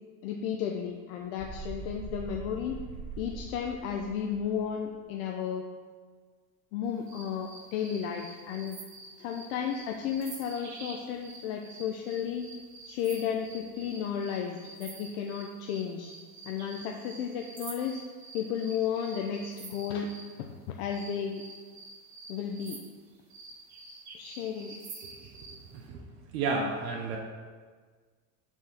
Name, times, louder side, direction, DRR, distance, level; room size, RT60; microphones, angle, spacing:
voice 1, 0.2-2.8 3.2-5.6 6.7-8.8 9.2-12.5 12.9-16.1 16.5-18.0 18.3-20.1 20.4-20.5 20.8-21.4 22.3-22.8 24.1-24.7, left 8 dB, 80° left, 2 dB, 0.7 m, -33 dB
sound 1, 1.4-5.0, right 4 dB, 15° right, 2.0 m, -42 dB
sound 2, 7.1-20.3 20.9-25.6, right 3 dB, 45° right, 1.5 m, -48 dB
voice 2, 25.7-26.0 26.3-27.2, right 3 dB, 80° right, -1 dB, 0.9 m, -32 dB
6.2 x 3.6 x 5.7 m, 1.5 s
supercardioid pair, 110°, 41 cm